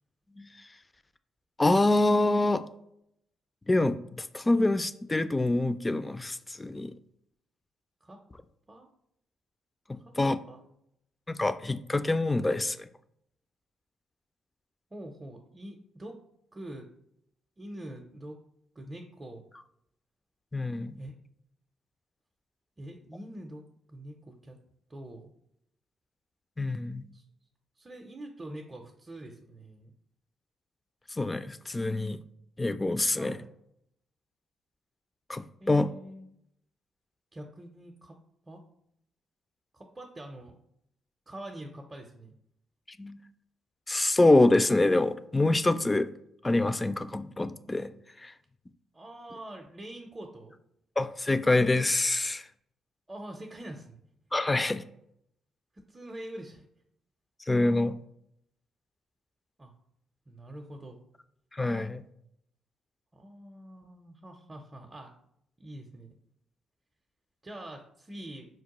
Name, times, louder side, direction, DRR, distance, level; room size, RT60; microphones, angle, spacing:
voice 1, 1.6-2.6 3.7-6.9 9.9-10.4 11.3-12.9 20.5-21.0 26.6-27.1 31.1-32.2 32.6-33.4 35.3-35.9 43.0-43.2 43.9-46.1 46.4-47.9 48.2-48.3 51.0-52.5 54.3-54.8 57.5-58.0 61.5-62.0, left 2 dB, 20° left, 12 dB, 0.3 m, -26 dB
voice 2, 14.9-16.2 16.5-16.9 17.6-18.4 18.7-19.4 21.0-21.1 22.8-24.6 24.9-25.3 27.1-27.2 27.8-29.9 33.2-33.5 35.6-36.3 37.3-38.1 38.5-38.6 39.7-40.5 41.3-42.4 48.9-50.6 53.1-54.0 55.9-56.7 59.6-59.7 60.3-61.0 63.1-65.1 65.6-66.1 67.4-68.5, right 1 dB, 25° right, 1 dB, 0.5 m, -44 dB
4.4 x 2.1 x 2.9 m, 0.74 s
hypercardioid pair, 45°, 0 cm